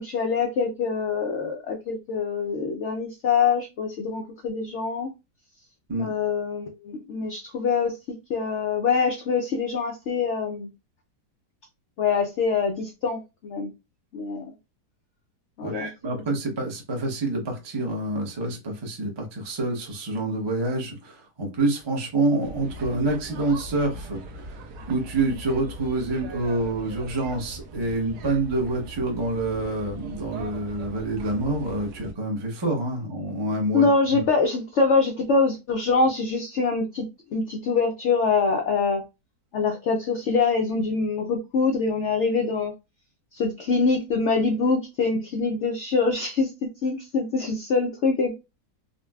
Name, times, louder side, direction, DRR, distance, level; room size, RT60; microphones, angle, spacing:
voice 1, 0.0-5.1 6.0-7.9 8.3-10.7 12.0-13.7 14.1-14.5 15.6-15.9 16.2-16.3 33.7-37.0 37.3-39.0 39.5-42.7 43.3-46.5 46.8-48.3, left 4 dB, 85° left, 0.6 m, -24 dB
voice 2, 15.6-24.4 24.9-33.9, right 2 dB, 30° right, 0.4 m, -27 dB
sound 1, 22.4-32.1, right 2 dB, 75° right, 1.2 m, -40 dB
3.9 x 2.1 x 2.3 m
omnidirectional pair, 1.8 m